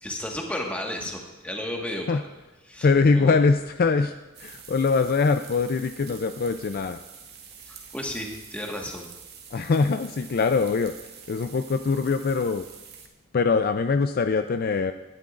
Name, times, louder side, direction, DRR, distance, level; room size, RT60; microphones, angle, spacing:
voice 1, 0.0-2.2 2.7-2.9 3.1-3.4 7.6-9.1, left 1 dB, 5° left, 0 dB, 1.6 m, -33 dB
voice 2, 2.8-4.1 4.4-7.0 9.5-10.9 11.3-12.6 13.3-14.9, left 4 dB, 45° left, 8 dB, 0.4 m, -23 dB
sound 1, 4.3-13.1, right 7 dB, 50° right, 1.5 m, -46 dB
18.0 x 11.5 x 2.5 m, 1.1 s
head